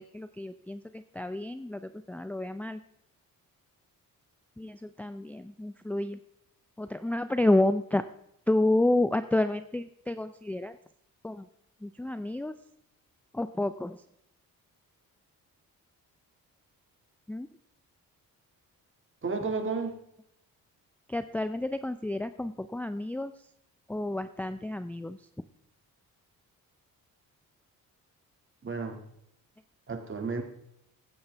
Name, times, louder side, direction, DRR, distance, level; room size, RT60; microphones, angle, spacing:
voice 1, 0.0-2.8 4.6-6.2 6.8-8.1 8.5-10.8 11.2-11.5 11.8-12.5 13.3-14.0 17.3-17.5 21.1-23.3 23.9-25.2, left 1 dB, 5° left, 10 dB, 0.4 m, -30 dB
voice 2, 19.2-20.0 28.6-29.0 29.9-30.4, right 4 dB, 35° right, 5 dB, 2.1 m, -32 dB
15.5 x 10.0 x 3.4 m, 0.75 s
cardioid pair, 90°, 35 cm